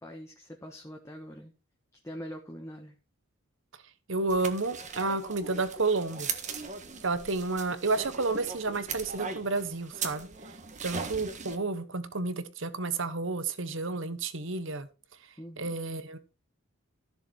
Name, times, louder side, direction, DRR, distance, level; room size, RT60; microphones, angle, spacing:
voice 1, 0.0-1.5 2.0-2.9 15.4-15.7, equal, 15° left, 2 dB, 1.3 m, -43 dB
voice 2, 4.1-6.3 7.0-10.3 10.8-14.9 15.6-16.2, right 3 dB, 65° right, 13 dB, 1.2 m, -31 dB
sound 1, 4.3-11.6, right 5 dB, 35° right, 1.5 m, -39 dB
13.5 x 7.0 x 4.7 m, 0.32 s
head